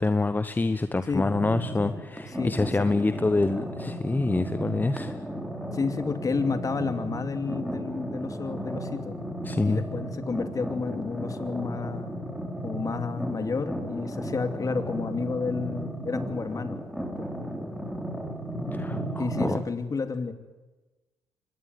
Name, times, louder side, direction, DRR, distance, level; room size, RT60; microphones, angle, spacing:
voice 1, 0.0-5.2 9.4-9.9 18.7-19.6, left 3 dB, 20° left, 12 dB, 1.1 m, -26 dB
sound 1, 1.3-19.6, right 1 dB, ahead, 4.1 m, -34 dB
voice 2, 2.4-2.9 5.7-9.2 9.7-12.2 12.6-17.3 19.2-20.3, left 4 dB, 35° left, 8 dB, 3.0 m, -31 dB
24.0 x 19.5 x 9.5 m, 1.2 s
hypercardioid pair, 60°, 10 cm